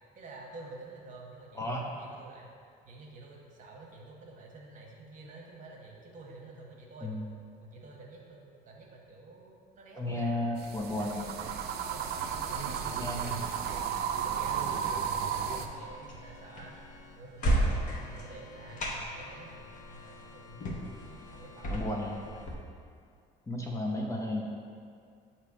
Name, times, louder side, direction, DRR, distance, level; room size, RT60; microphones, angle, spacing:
voice 1, 0.1-2.5 2.8-7.1 7.6-10.3 11.0-13.5 13.9-16.8 17.2-22.1, right 3 dB, 50° right, -1 dB, 1.1 m, -49 dB
voice 2, 1.5-1.9 7.0-7.3 10.0-11.2 13.0-13.4 21.7-22.1 23.5-24.4, left 1 dB, 15° left, -1 dB, 0.6 m, -33 dB
sound 1, 10.6-15.7, right 7 dB, 75° right, 0.4 m, -33 dB
sound 2, 12.9-22.5, right 1 dB, 50° left, 1.0 m, -36 dB
Organ, 15.7-22.5, left 5 dB, 85° left, 0.6 m, -53 dB
6.8 x 2.9 x 4.7 m, 2.3 s
cardioid pair, 110°, 17 cm